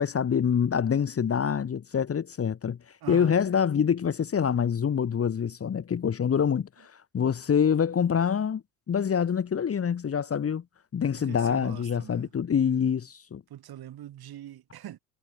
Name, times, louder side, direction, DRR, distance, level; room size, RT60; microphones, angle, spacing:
voice 1, 0.0-2.8 3.1-8.6 8.9-10.6 10.9-13.4, left 7 dB, 30° left, 1.7 m, -26 dB
voice 2, 3.0-3.4 11.1-12.3 13.5-15.0, right 12 dB, 50° right, 8.0 m, -43 dB
hypercardioid pair, 75°, 46 cm